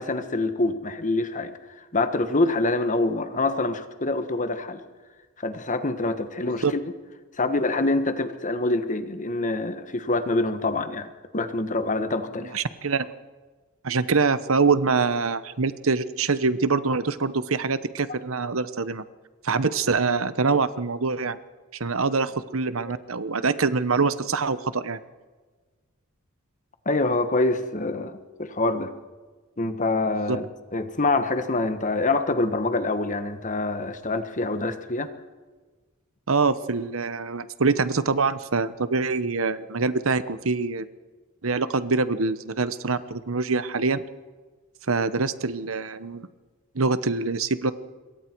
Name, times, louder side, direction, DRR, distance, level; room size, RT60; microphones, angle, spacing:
voice 1, 0.0-4.8 5.4-6.8 7.4-12.5 26.8-28.9 29.6-30.4 30.7-35.1, left 2 dB, 35° left, 9 dB, 1.5 m, -25 dB
voice 2, 12.5-13.1 13.8-19.0 19.4-21.4 21.8-25.0 30.3-30.4 36.3-40.9 41.4-44.0 44.9-46.3 46.7-47.7, right 4 dB, 70° right, 14 dB, 1.0 m, -24 dB
27.0 x 22.5 x 4.7 m, 1.3 s
head